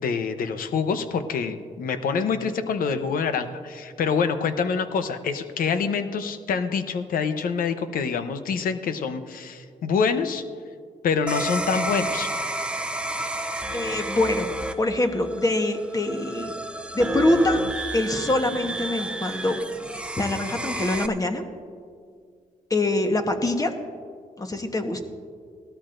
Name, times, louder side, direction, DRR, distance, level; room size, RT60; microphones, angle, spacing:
voice 1, 0.0-10.4 11.0-12.3, left 5 dB, 70° left, 9 dB, 0.8 m, -26 dB
sound 1, 11.3-21.1, right 1 dB, 5° right, 0.7 m, -31 dB
voice 2, 13.7-14.5 14.8-16.5 16.9-17.6 17.9-19.6 20.2-21.4 22.7-23.7 24.4-25.0, left 2 dB, 25° left, 5 dB, 1.2 m, -24 dB
17.5 x 13.0 x 2.6 m, 2.1 s
cardioid pair, 75°, 15 cm